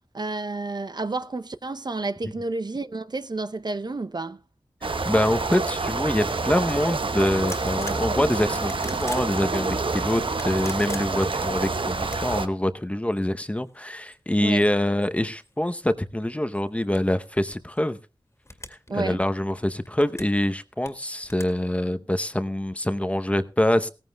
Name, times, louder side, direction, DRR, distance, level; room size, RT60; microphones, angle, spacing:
voice 1, 0.1-4.4 14.4-14.6 18.9-19.2, right 3 dB, 50° right, 0.7 m, -30 dB
sound 1, 4.8-12.5, right 3 dB, 65° right, 1.0 m, -27 dB
voice 2, 5.0-18.0 18.7-23.9, left 1 dB, 15° left, 0.8 m, -25 dB
sound 2, 7.4-8.1 8.6-9.3 10.2-11.4 12.0-12.4 13.1-13.2 13.6-15.8 16.2-17.8 18.4-18.9 19.2-20.4 20.8-21.4, left 2 dB, 30° left, 2.0 m, -42 dB
17.0 x 14.5 x 2.3 m
wide cardioid pair, 50°, 9 cm